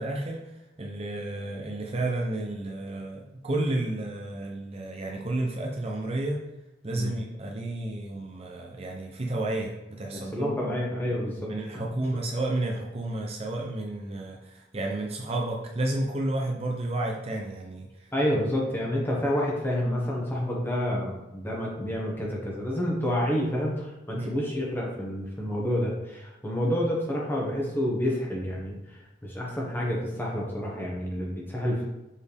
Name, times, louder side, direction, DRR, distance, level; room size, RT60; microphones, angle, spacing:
voice 1, 0.0-6.4 6.8-10.8 11.5-18.1 24.1-24.3, right 2 dB, 30° right, 0 dB, 0.6 m, -31 dB
voice 2, 10.1-11.9 18.1-31.9, equal, 10° left, -3 dB, 1.3 m, -29 dB
7.2 x 4.3 x 3.4 m, 0.98 s
head